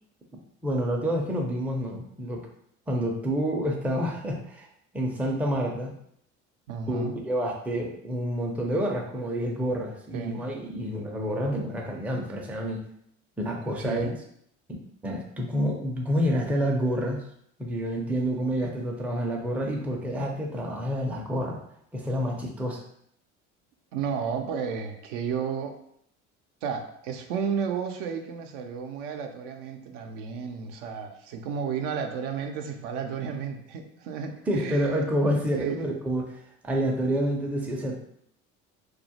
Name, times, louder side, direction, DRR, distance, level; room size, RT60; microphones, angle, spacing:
voice 1, 0.6-2.5 2.9-4.7 4.9-5.9 6.9-12.8 13.4-14.0 14.7-17.3 17.6-21.6 21.9-22.8 34.5-36.2 36.6-38.0, equal, 5° right, 0 dB, 0.4 m, -28 dB
voice 2, 6.7-7.2 10.1-10.4 13.8-14.1 23.9-25.8 26.6-34.9 35.5-35.9, right 6 dB, 75° right, 4 dB, 0.5 m, -32 dB
2.3 x 2.1 x 2.8 m, 0.69 s
hypercardioid pair, 65°, 37 cm